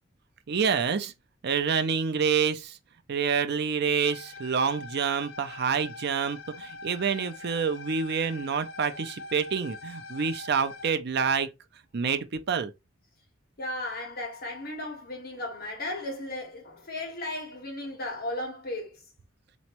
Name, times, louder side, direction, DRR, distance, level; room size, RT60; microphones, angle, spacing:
voice 1, 0.5-1.1 1.4-2.7 3.1-11.5 11.9-12.7, right 6 dB, 55° right, 0.5 m, -27 dB
sound 1, 4.0-11.0, left 3 dB, 90° left, 0.6 m, -43 dB
voice 2, 13.6-19.0, left 1 dB, 50° left, 1.5 m, -35 dB
4.3 x 3.0 x 2.9 m
head